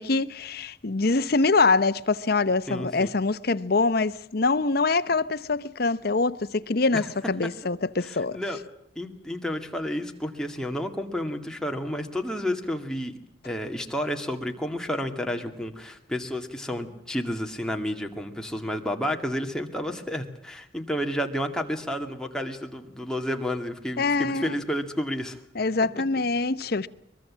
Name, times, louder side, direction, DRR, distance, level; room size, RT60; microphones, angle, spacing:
voice 1, 0.0-8.4 24.0-24.6 25.5-26.9, left 3 dB, 55° left, 0.8 m, -24 dB
voice 2, 2.7-3.1 8.0-8.6 9.0-13.1 13.4-25.4, equal, 5° left, 2.1 m, -31 dB
23.0 x 22.0 x 7.4 m
head